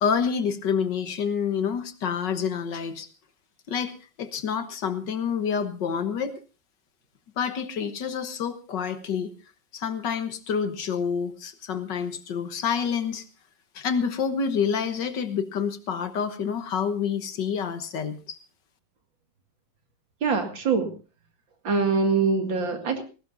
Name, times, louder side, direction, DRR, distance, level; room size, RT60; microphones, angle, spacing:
voice 1, 0.0-3.1 3.7-3.9 4.2-6.4 7.4-9.3 9.7-13.2 13.8-18.4, left 6 dB, 65° left, 10 dB, 1.8 m, -28 dB
voice 2, 20.2-20.9 21.6-23.0, right 4 dB, 70° right, 5 dB, 2.8 m, -23 dB
19.0 x 17.5 x 2.7 m, 0.33 s
omnidirectional pair, 2.1 m